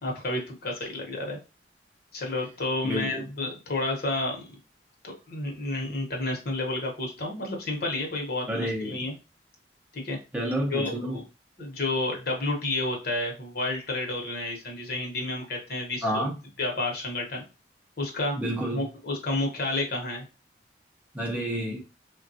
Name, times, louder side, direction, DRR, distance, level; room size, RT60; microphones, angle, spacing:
voice 1, 0.0-1.4 2.1-4.5 5.0-9.1 9.9-10.2 10.7-11.2 11.6-16.3 16.6-17.4 18.0-18.4 18.7-20.2, left 2 dB, 55° left, 0.9 m, -30 dB
voice 2, 2.8-3.3 8.5-9.0 10.3-11.2 16.0-16.4 18.4-18.8 21.1-21.8, right 1 dB, 10° right, 0.6 m, -29 dB
3.4 x 2.2 x 2.7 m
head